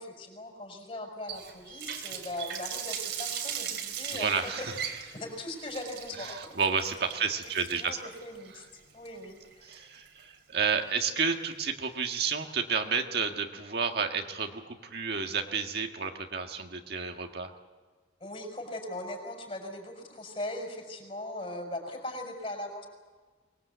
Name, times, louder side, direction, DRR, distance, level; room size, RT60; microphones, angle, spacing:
voice 1, 0.0-4.3 5.1-6.4 7.7-8.6 8.9-9.9 18.2-22.9, left 1 dB, 35° left, 2 dB, 5.4 m, -39 dB
Water tap faucet, 1.3-10.2, right 8 dB, 80° right, 3.3 m, -39 dB
voice 2, 4.1-4.7 6.2-8.0 8.5-8.7 9.6-17.5, right 5 dB, 60° right, 4 dB, 1.7 m, -31 dB
24.0 x 20.5 x 8.1 m, 1.4 s
head